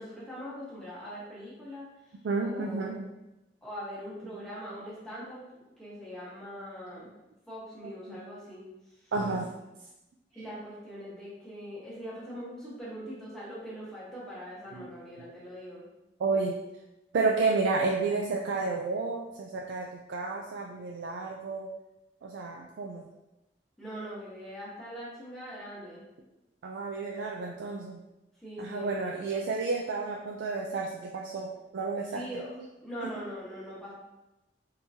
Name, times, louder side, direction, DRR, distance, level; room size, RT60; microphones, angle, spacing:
voice 1, 0.0-1.8 2.4-3.0 3.6-5.4 5.8-7.1 7.5-8.6 9.0-9.1 10.3-15.8 23.8-26.0 28.4-29.4 32.1-32.5 32.8-33.9, equal, 5° left, -9 dB, 1.2 m, -42 dB
voice 2, 2.2-3.1 4.3-4.5 7.8-8.2 9.1-9.5 10.4-10.5 14.7-14.8 16.2-16.6 17.1-21.7 22.2-23.1 26.6-28.0 28.6-32.2, right 3 dB, 85° right, -1 dB, 0.4 m, -31 dB
3.6 x 2.9 x 2.7 m, 0.97 s
head